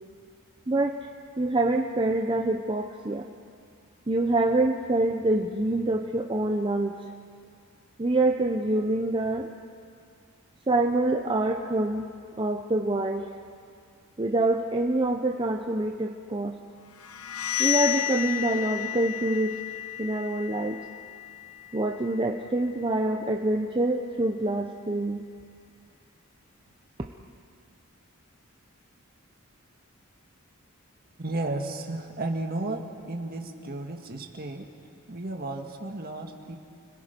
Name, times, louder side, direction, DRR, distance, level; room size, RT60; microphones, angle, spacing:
voice 1, 0.7-1.0 1.4-3.3 4.1-7.0 8.0-9.5 10.7-12.1 12.4-13.3 14.2-16.6 17.6-19.6 20.0-20.8 21.7-25.2, right 2 dB, 25° right, 3 dB, 0.8 m, -26 dB
sound 1, 17.0-22.6, left 14 dB, 90° left, 0.9 m, -32 dB
voice 2, 31.2-34.7 35.1-36.6, right 2 dB, 45° right, 3 dB, 1.9 m, -33 dB
30.0 x 21.5 x 5.3 m, 2.3 s
head